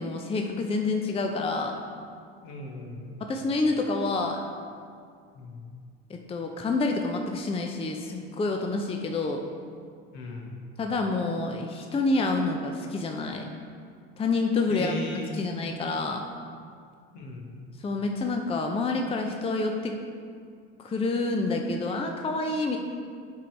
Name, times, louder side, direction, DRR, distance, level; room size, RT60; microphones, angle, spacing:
voice 1, 0.0-1.8 3.2-4.4 6.1-9.4 10.8-13.5 14.2-15.0 15.3-16.2 17.8-20.0 20.8-22.8, left 3 dB, 20° left, 3 dB, 0.6 m, -28 dB
voice 2, 2.4-3.1 5.3-5.7 10.1-10.5 14.7-15.5 17.1-17.5, left 2 dB, 60° left, 0 dB, 1.4 m, -37 dB
8.3 x 3.9 x 4.5 m, 2.2 s
hypercardioid pair, 75°, 32 cm